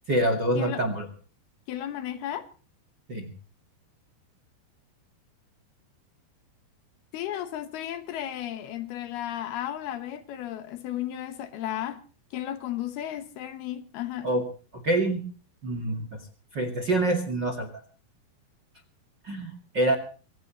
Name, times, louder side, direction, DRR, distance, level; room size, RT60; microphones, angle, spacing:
voice 1, 0.1-1.1 3.1-3.3 14.2-14.4 14.8-15.2 15.6-16.2 16.5-17.7 19.2-20.0, right 1 dB, 40° right, 1.8 m, -26 dB
voice 2, 1.7-2.5 7.1-12.0 12.3-14.3, left 11 dB, 70° left, 2.9 m, -34 dB
24.5 x 16.5 x 3.0 m
omnidirectional pair, 5.0 m